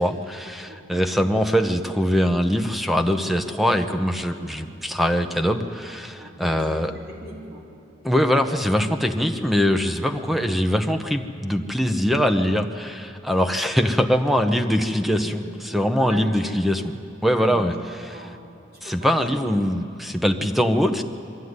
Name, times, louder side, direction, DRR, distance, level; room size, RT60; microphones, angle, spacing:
voice 1, 0.0-6.9 8.0-16.8 17.2-17.7 18.8-21.0, equal, ahead, 7 dB, 0.8 m, -22 dB
voice 2, 0.7-1.1 6.1-7.7 14.6-16.6 17.3-18.4 18.7-19.2, equal, 55° right, -4 dB, 4.7 m, -41 dB
22.5 x 13.5 x 9.6 m, 2.6 s
head